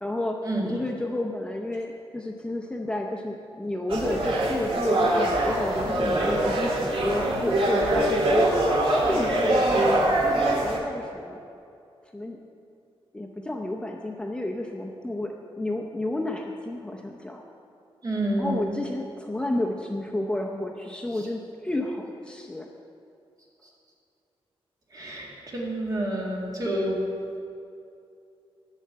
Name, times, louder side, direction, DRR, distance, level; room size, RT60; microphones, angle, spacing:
voice 1, 0.0-0.4 0.6-8.5 9.1-11.4 12.1-12.4 13.1-17.4 18.4-22.7, left 1 dB, 10° left, 0 dB, 0.6 m, -31 dB
sound 1, 3.9-10.8, right 1 dB, 65° right, 1.7 m, -23 dB
voice 2, 18.0-18.7 24.9-27.0, right 1 dB, 40° right, -3 dB, 2.1 m, -28 dB
10.5 x 5.7 x 8.6 m, 2.5 s
wide cardioid pair, 155°, 10 cm